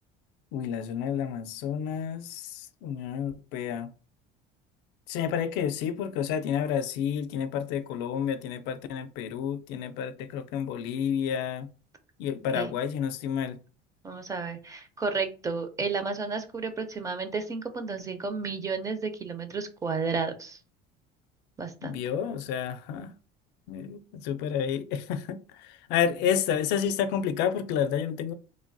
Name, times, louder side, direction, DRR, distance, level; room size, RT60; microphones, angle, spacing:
voice 1, 0.5-3.9 5.1-11.7 12.2-13.6 21.8-23.1 23.7-28.3, left 8 dB, 70° left, 0.4 m, -30 dB
voice 2, 14.0-20.6 21.6-22.0, right 4 dB, 20° right, 0.4 m, -32 dB
3.2 x 2.2 x 2.5 m
cardioid pair, 135°, 18 cm